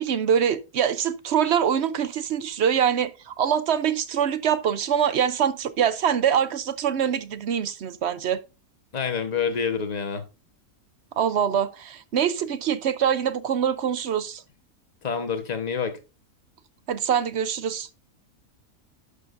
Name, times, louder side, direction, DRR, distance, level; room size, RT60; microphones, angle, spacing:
voice 1, 0.0-8.4 11.2-14.4 16.9-17.9, right 8 dB, 60° right, 0.8 m, -24 dB
voice 2, 8.9-10.2 15.0-16.0, left 6 dB, 30° left, 1.1 m, -27 dB
11.5 x 6.6 x 2.6 m
omnidirectional pair, 1.6 m